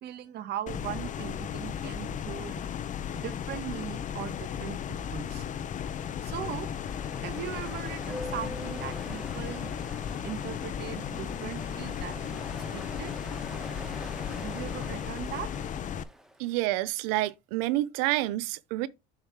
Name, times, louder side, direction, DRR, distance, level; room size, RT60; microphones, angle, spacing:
voice 1, 0.0-2.6 3.1-5.5 6.2-6.7 7.2-9.7 10.2-12.5 12.7-13.1 14.4-15.5, right 11 dB, 55° right, 1.3 m, -39 dB
sound 1, 0.7-16.0, left 8 dB, 40° left, 0.7 m, -35 dB
Ocean, 5.5-16.6, equal, ahead, 1.3 m, -45 dB
voice 2, 16.4-18.9, right 16 dB, 85° right, 0.6 m, -28 dB
7.5 x 3.2 x 5.9 m
supercardioid pair, 100°, 20 cm